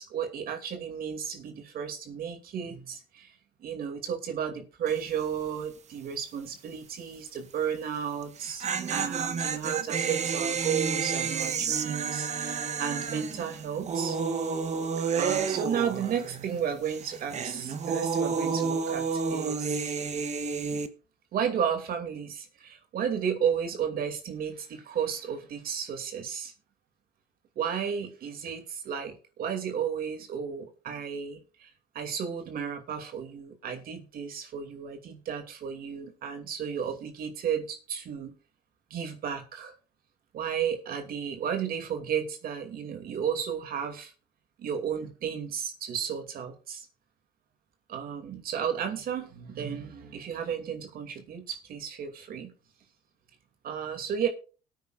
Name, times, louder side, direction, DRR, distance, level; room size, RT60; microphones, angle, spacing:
voice 1, 0.0-3.3 3.6-8.6 8.9-14.2 15.2-19.9 21.3-26.5 27.6-38.3 38.9-39.7 40.3-44.1 44.6-46.9 47.9-52.5 53.6-54.3, right 8 dB, 60° right, 5 dB, 2.6 m, -33 dB
sound 1, 4.9-5.2 5.5-5.6 8.2-16.6 16.8-20.9, right 5 dB, 40° right, 1.2 m, -30 dB
19.0 x 9.3 x 2.5 m, 0.34 s
cardioid pair, 110°, 17 cm